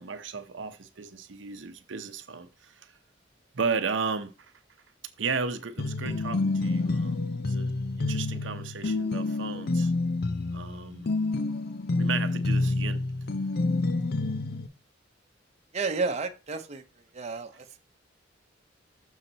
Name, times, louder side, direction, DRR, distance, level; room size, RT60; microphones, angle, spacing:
voice 1, 0.0-3.0 3.5-4.5 5.2-7.7 8.0-9.9 10.5-11.1 12.0-13.0, right 5 dB, 70° right, 0.7 m, -34 dB
sound 1, 5.8-14.7, left 2 dB, 55° left, 0.6 m, -28 dB
voice 2, 15.7-16.8 17.1-17.8, right 4 dB, 35° right, 0.8 m, -31 dB
6.5 x 6.0 x 3.9 m
head